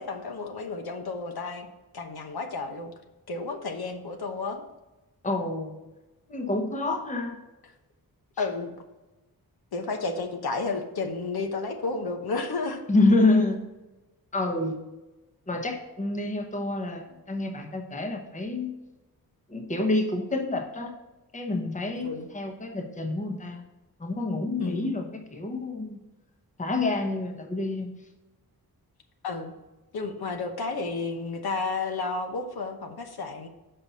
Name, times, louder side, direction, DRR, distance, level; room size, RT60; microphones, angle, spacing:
voice 1, 0.0-1.7 1.9-2.9 3.3-4.6 8.4-8.7 9.7-12.8 22.0-22.3 24.6-24.9 29.2-29.5 29.9-33.5, left 3 dB, 80° left, 5 dB, 1.0 m, -32 dB
voice 2, 5.2-5.8 6.3-7.4 12.9-13.6 14.3-14.8 15.5-18.8 19.5-20.9 21.3-23.6 24.0-26.0 26.6-27.9, left 2 dB, 20° left, 3 dB, 0.9 m, -27 dB
6.9 x 5.6 x 4.1 m, 1.1 s
wide cardioid pair, 175°, 37 cm